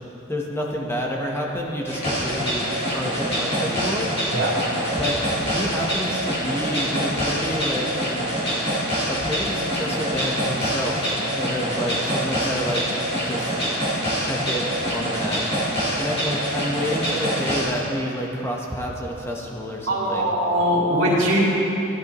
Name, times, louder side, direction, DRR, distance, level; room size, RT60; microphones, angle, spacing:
voice 1, 0.3-2.7 2.9-4.1 5.0-5.1 5.4-8.0 9.1-11.0 11.3-12.8 13.2-13.5 14.2-15.5 16.0-20.3, equal, 10° left, -2 dB, 1.1 m, -29 dB
sound 1, 1.9-17.6, equal, 30° left, 2.7 m, -25 dB
voice 2, 4.3-4.6 19.9-21.4, equal, 75° right, -8 dB, 2.8 m, -21 dB
14.5 x 10.5 x 3.1 m, 3.0 s
head